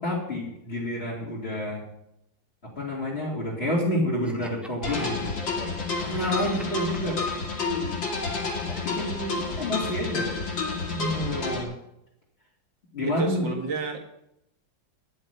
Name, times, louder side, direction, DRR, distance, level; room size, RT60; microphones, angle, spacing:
voice 1, 0.0-1.8 2.6-5.4 6.0-7.2 7.6-7.9 8.8-10.5 10.8-11.7 12.9-13.5, left 1 dB, 30° left, -6 dB, 3.4 m, -29 dB
Laughter, 4.2-10.0, equal, ahead, 0.8 m, -44 dB
sound 1, 4.8-11.6, left 4 dB, 80° left, 3.0 m, -30 dB
voice 2, 13.0-14.0, right 4 dB, 70° right, 2 dB, 2.6 m, -30 dB
11.0 x 6.5 x 9.1 m, 0.80 s
omnidirectional pair, 2.0 m